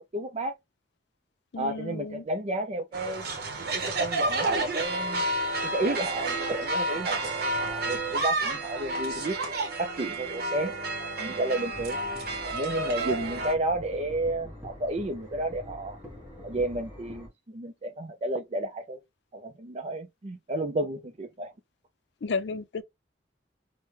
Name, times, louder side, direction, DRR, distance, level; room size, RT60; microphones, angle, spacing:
voice 1, 0.1-0.5 1.6-3.2 3.7-5.3 5.6-9.5 9.8-10.7 11.2-12.0 12.5-16.0 16.4-19.0 19.3-21.5, right 1 dB, 35° right, 0.5 m, -32 dB
voice 2, 1.5-2.2 22.2-22.8, left 4 dB, 70° left, 0.5 m, -32 dB
sound 1, 2.9-13.5, right 2 dB, 60° right, 0.9 m, -30 dB
sound 2, 11.7-17.3, left 1 dB, 10° right, 1.1 m, -45 dB
3.2 x 2.1 x 3.2 m
head